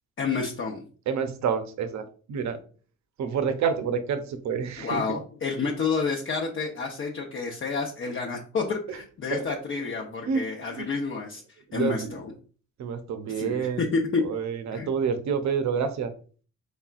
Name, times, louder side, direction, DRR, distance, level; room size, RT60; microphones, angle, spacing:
voice 1, 0.2-0.8 4.8-11.4 11.7-12.3 13.4-14.2 14.7-14.9, left 4 dB, 40° left, -1 dB, 0.8 m, -29 dB
voice 2, 1.1-2.6 3.2-5.2 8.9-9.0 9.3-9.4 10.3-10.9 11.7-12.1 12.8-13.9 14.2-16.1, right 6 dB, 65° right, 9 dB, 0.7 m, -28 dB
4.2 x 3.4 x 2.4 m, 0.40 s
cardioid pair, 90°, 30 cm